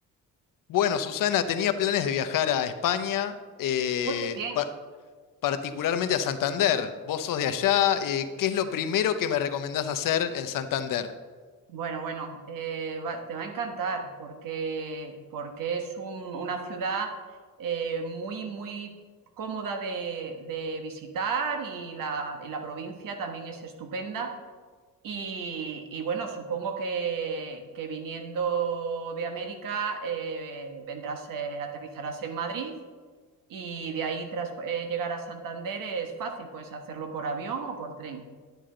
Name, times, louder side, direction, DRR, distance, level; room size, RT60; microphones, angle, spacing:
voice 1, 0.7-3.3 3.6-4.7 5.4-11.1, left 9 dB, 70° left, 9 dB, 0.7 m, -26 dB
voice 2, 4.1-4.6 11.7-17.2 17.6-19.0 19.4-24.4 25.0-32.8 33.5-38.3, right 5 dB, 75° right, 5 dB, 1.2 m, -33 dB
10.5 x 9.0 x 3.8 m, 1.5 s
cardioid pair, 155°, 34 cm